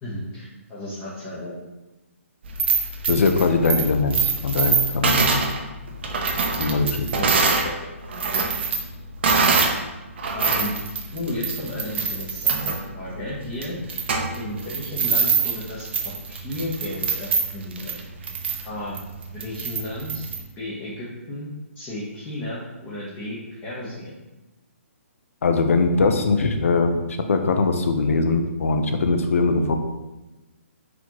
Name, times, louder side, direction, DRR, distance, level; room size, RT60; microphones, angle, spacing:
voice 1, 0.0-1.5 7.2-7.3 7.6-7.9 8.3-8.4 10.3-10.7 11.1-13.8 14.4-15.9 16.3-17.9 18.6-19.0 19.3-20.2 20.6-21.5 21.7-24.2, left 1 dB, 20° left, -9 dB, 0.8 m, -33 dB
sound 1, 2.4-7.7 8.0-9.8 10.2-20.4, right 5 dB, 50° right, 0.6 m, -24 dB
voice 2, 3.1-5.4 6.6-7.1 25.4-29.8, left 3 dB, 70° left, 6 dB, 0.5 m, -21 dB
4.1 x 2.9 x 2.9 m, 1.1 s
hypercardioid pair, 150°, 8 cm